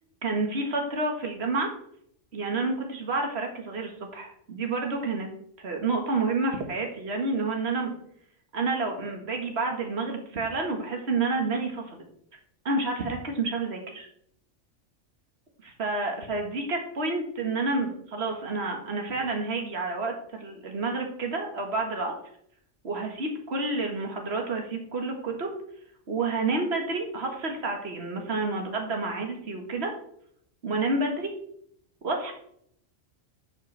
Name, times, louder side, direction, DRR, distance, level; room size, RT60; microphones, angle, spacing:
voice 1, 0.2-1.7 2.3-5.3 5.6-7.9 8.5-12.0 12.7-14.1 15.8-22.1 22.8-25.6 26.1-29.9 30.6-31.3 32.0-32.3, right 3 dB, 55° right, 2 dB, 2.0 m, -29 dB
11.5 x 6.6 x 3.4 m, 0.66 s
omnidirectional pair, 1.3 m